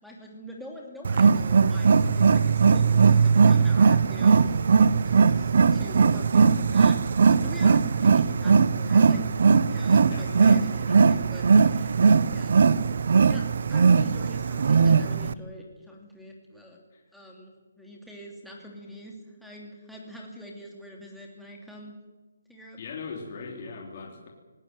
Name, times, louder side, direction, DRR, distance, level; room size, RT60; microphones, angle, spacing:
voice 1, 0.0-4.7 5.0-12.0 12.3-12.6 13.1-13.4 13.7-16.8 17.1-19.1 19.4-21.9 22.5-22.8, left 1 dB, ahead, -2 dB, 2.7 m, -44 dB
Wild animals, 1.0-15.3, right 5 dB, 50° right, 0.7 m, -20 dB
voice 2, 10.1-11.3 16.9-17.0 22.8-24.3, left 4 dB, 35° left, 0 dB, 3.1 m, -41 dB
19.0 x 18.5 x 9.2 m, 1.2 s
hypercardioid pair, 175°, 0 cm